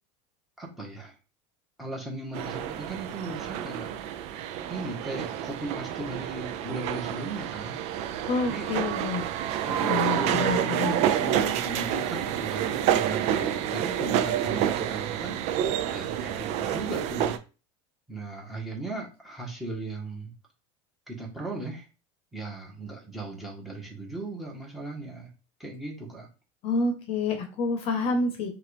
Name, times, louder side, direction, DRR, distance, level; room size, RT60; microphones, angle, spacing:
voice 1, 0.6-1.1 1.8-3.9 4.6-7.8 8.4-8.7 9.6-15.4 15.8-17.4 18.1-20.3 21.1-21.8 22.3-25.3 25.6-26.3, right 2 dB, ahead, -3 dB, 1.4 m, -37 dB
sound 1, 2.3-17.4, right 10 dB, 50° right, 0.5 m, -28 dB
voice 2, 8.3-9.2 9.8-11.0 26.6-28.5, left 3 dB, 45° left, 5 dB, 0.9 m, -28 dB
5.6 x 2.6 x 3.4 m, 0.33 s
supercardioid pair, 135°, 14 cm